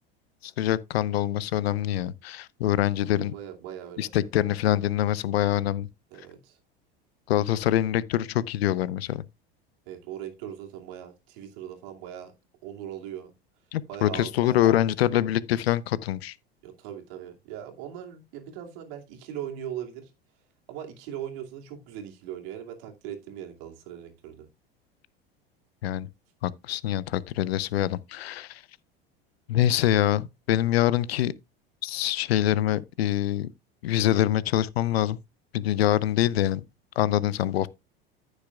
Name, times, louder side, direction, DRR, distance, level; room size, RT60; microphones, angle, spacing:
voice 1, 0.4-3.3 4.0-5.9 7.3-9.2 13.7-16.3 25.8-26.1 26.4-28.6 29.5-31.3 31.8-33.5 33.8-35.2 35.5-36.6 37.0-37.7, left 12 dB, 80° left, 0.7 m, -25 dB
voice 2, 3.2-4.3 6.1-6.6 9.9-12.3 12.6-13.3 13.9-14.8 16.6-20.1 20.7-24.5, right 10 dB, 65° right, 2.5 m, -40 dB
14.5 x 6.6 x 2.4 m
hypercardioid pair, 85°, 30 cm